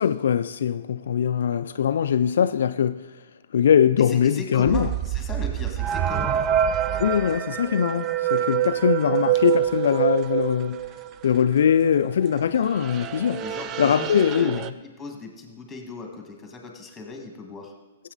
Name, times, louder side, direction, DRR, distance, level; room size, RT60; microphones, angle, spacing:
voice 1, 0.0-3.0 3.5-4.9 7.0-10.8 11.2-13.4 13.8-14.6, left 8 dB, 70° left, 11 dB, 0.3 m, -21 dB
voice 2, 4.0-6.4 12.5-12.7 13.4-14.5 14.8-17.7, left 3 dB, 10° left, 2 dB, 1.9 m, -38 dB
sound 1, 4.6-11.3 11.5-12.3 12.6-14.7, right 11 dB, 25° right, 0.4 m, -26 dB
15.5 x 7.9 x 4.0 m, 1.3 s
hypercardioid pair, 140°, 0 cm